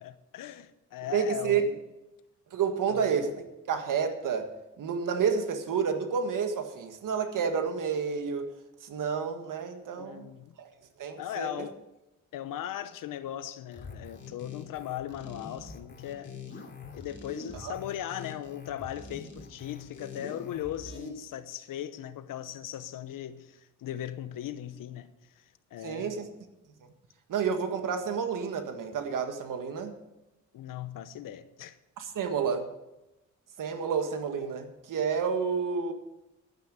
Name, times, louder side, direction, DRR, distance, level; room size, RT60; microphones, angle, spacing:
voice 1, 0.0-1.8 2.9-3.1 10.0-10.5 11.2-11.8 12.3-16.4 16.9-25.4 25.7-26.2 30.5-31.8, left 11 dB, 90° left, 0.9 m, -38 dB
voice 2, 1.1-1.6 2.5-3.3 3.7-8.5 8.8-10.3 10.6-10.7 11.0-11.5 17.6-17.7 25.8-26.3 27.3-29.9 32.0-32.7 33.6-35.9, right 6 dB, 75° right, 1.7 m, -30 dB
sound 1, 13.7-21.1, left 4 dB, 35° left, 2.9 m, -44 dB
11.5 x 9.6 x 6.9 m
cardioid pair, 95°, 32 cm